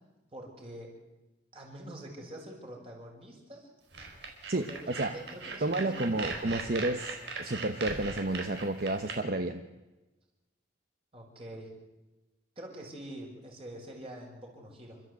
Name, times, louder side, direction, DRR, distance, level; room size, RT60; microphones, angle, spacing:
voice 1, 0.3-0.9 1.5-3.7 4.5-6.3 9.3-9.4 11.1-11.7 12.6-15.0, right 1 dB, 30° right, 0 dB, 5.6 m, -45 dB
sound 1, 3.9-9.1, right 4 dB, 80° right, 4.3 m, -39 dB
voice 2, 4.5-5.1 5.6-9.6, right 2 dB, 55° right, 8 dB, 1.0 m, -31 dB
28.0 x 13.5 x 8.1 m, 1.1 s
head